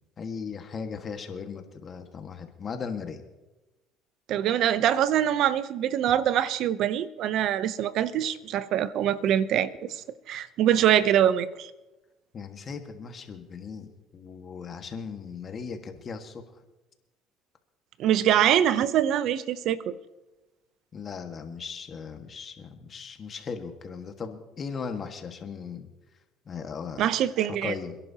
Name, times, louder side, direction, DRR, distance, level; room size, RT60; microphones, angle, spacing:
voice 1, 0.2-3.2 12.3-13.9 14.1-16.4 20.9-25.9 26.4-27.1 27.6-28.0, left 5 dB, 40° left, 6 dB, 1.6 m, -37 dB
voice 2, 4.3-11.7 18.0-19.9 27.0-27.7, right 10 dB, 65° right, 15 dB, 0.6 m, -24 dB
27.5 x 11.0 x 2.9 m, 1.1 s
supercardioid pair, 95°, 0 cm